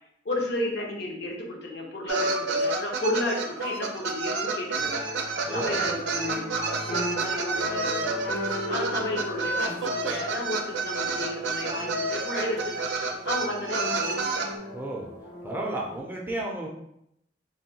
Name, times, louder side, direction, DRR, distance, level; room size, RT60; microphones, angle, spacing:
voice 1, 0.2-8.2 8.7-12.8 13.2-14.4, left 1 dB, 65° left, -1 dB, 0.7 m, -33 dB
sound 1, 2.1-14.5, right 3 dB, 85° right, 0.4 m, -29 dB
sound 2, 4.7-16.0, left 1 dB, 90° left, 1.1 m, -38 dB
voice 2, 5.4-5.8 14.7-15.1 15.4-16.7, right 1 dB, 10° right, -2 dB, 0.4 m, -32 dB
3.5 x 2.2 x 2.8 m, 0.76 s
head